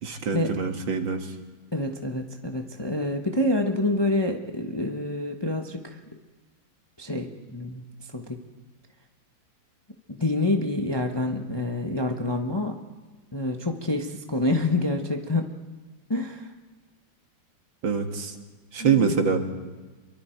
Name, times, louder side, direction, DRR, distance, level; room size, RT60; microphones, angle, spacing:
voice 1, 0.0-1.3 17.8-18.3 18.7-19.4, right 6 dB, 70° right, 5 dB, 2.4 m, -24 dB
voice 2, 1.7-6.0 7.0-7.8 8.1-8.4 10.1-12.8 13.3-15.5 16.1-16.5 18.8-19.1, left 2 dB, 15° left, 4 dB, 0.9 m, -27 dB
28.0 x 23.0 x 4.6 m, 1.3 s
omnidirectional pair, 2.2 m